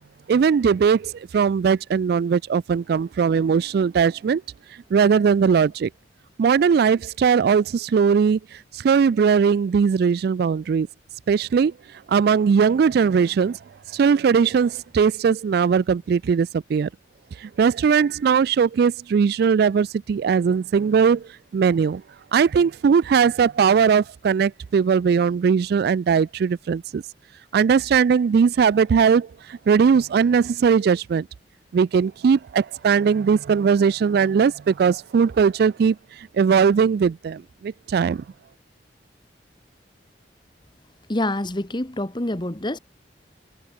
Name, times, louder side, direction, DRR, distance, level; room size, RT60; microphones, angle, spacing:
voice 1, 0.3-4.4 4.9-5.9 6.4-10.9 11.3-11.7 12.1-13.6 13.9-16.9 17.4-22.0 22.3-27.0 27.5-31.3 31.7-38.2, right 6 dB, 60° right, 0.3 m, -19 dB
voice 2, 41.1-42.8, left 1 dB, 25° left, 1.5 m, -26 dB
head